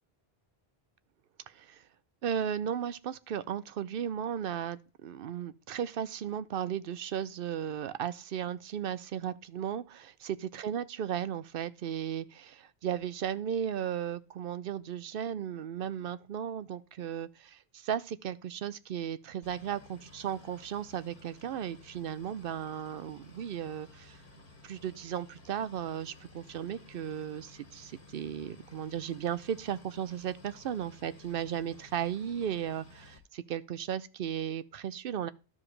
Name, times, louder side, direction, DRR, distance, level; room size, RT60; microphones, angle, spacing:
voice 1, 1.5-1.8 2.2-24.2 24.6-35.3, right 9 dB, 65° right, 0.7 m, -35 dB
Boat Water vehicle, 19.4-33.2, left 2 dB, 55° left, 1.6 m, -55 dB
13.0 x 4.9 x 3.2 m
omnidirectional pair, 1.0 m